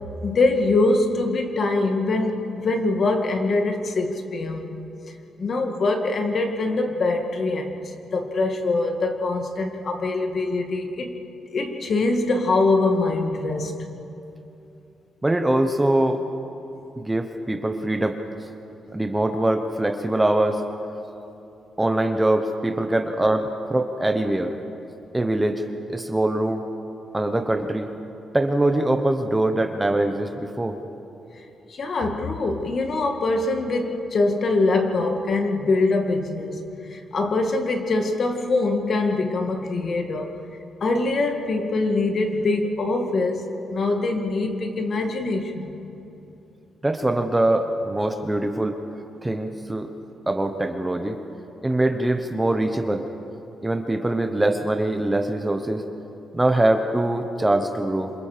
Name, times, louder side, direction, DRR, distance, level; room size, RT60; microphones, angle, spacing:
voice 1, 0.2-4.8 5.4-7.8 8.1-11.1 11.5-13.8 31.7-36.6 36.9-40.3 40.8-45.8, left 3 dB, 45° left, 4 dB, 2.0 m, -23 dB
voice 2, 15.2-16.2 17.0-18.2 18.9-20.6 21.8-24.5 25.1-25.6 25.9-26.6 27.1-27.9 28.3-30.8 46.8-48.8 49.2-49.9 50.3-51.2 51.6-53.1 53.6-55.8 56.3-58.1, right 1 dB, 10° right, 5 dB, 1.0 m, -23 dB
27.0 x 27.0 x 5.1 m, 2.9 s
wide cardioid pair, 160°, 0 cm